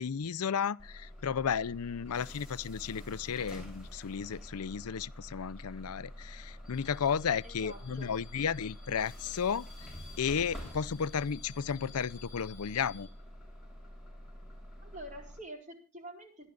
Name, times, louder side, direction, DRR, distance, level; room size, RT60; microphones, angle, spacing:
voice 1, 0.0-9.6 10.2-13.1, left 7 dB, 80° left, 0.5 m, -33 dB
Bus / Alarm, 0.8-15.4, equal, ahead, 7.4 m, -47 dB
voice 2, 7.4-8.1 14.8-16.5, right 1 dB, 35° right, 4.6 m, -47 dB
27.0 x 11.0 x 2.5 m
head